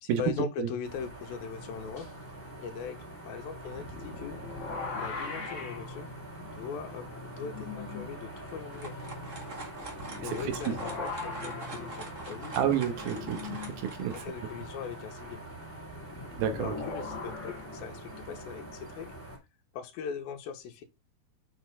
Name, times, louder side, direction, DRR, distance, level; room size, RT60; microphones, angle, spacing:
voice 1, 0.0-2.1 2.6-3.0 3.2-4.4 4.9-6.1 6.4-8.9 10.2-12.7 14.1-15.4 16.6-19.1 19.7-20.8, left 6 dB, 75° left, 2.9 m, -40 dB
sound 1, 0.8-19.4, right 1 dB, 5° left, 3.9 m, -44 dB
sound 2, 3.6-8.1 8.4-8.5 9.8-13.8 15.9-18.8, left 4 dB, 30° left, 1.4 m, -41 dB
sound 3, 8.4-14.2, right 3 dB, 50° right, 0.8 m, -44 dB
voice 2, 12.6-14.2 16.4-16.7, right 9 dB, 75° right, 3.1 m, -30 dB
7.2 x 6.5 x 3.6 m
omnidirectional pair, 4.5 m